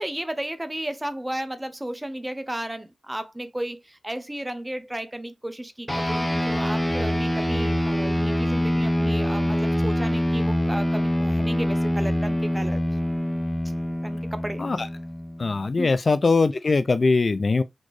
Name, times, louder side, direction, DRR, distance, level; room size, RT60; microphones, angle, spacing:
voice 1, 0.0-12.8 14.0-14.6 15.8-15.9, right 1 dB, 15° right, 0.7 m, -33 dB
sound 1, 5.9-15.6, equal, 10° left, 0.8 m, -25 dB
voice 2, 15.4-17.6, left 3 dB, 50° left, 0.4 m, -21 dB
4.3 x 2.9 x 3.0 m
cardioid pair, 55°, 0 cm